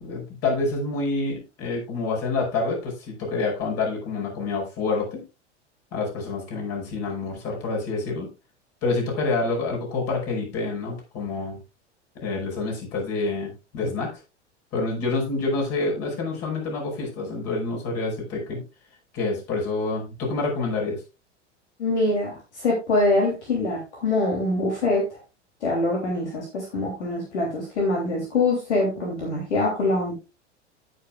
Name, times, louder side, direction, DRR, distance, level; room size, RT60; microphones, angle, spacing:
voice 1, 0.0-5.2 5.9-8.3 8.8-11.6 12.1-14.2 14.7-18.6 19.1-21.0, left 3 dB, 40° left, 0 dB, 5.6 m, -27 dB
voice 2, 21.8-25.2 25.6-30.1, left 2 dB, 70° left, 0 dB, 3.1 m, -24 dB
17.5 x 6.6 x 2.4 m, 0.28 s
figure-of-eight pair, 85°, 36 cm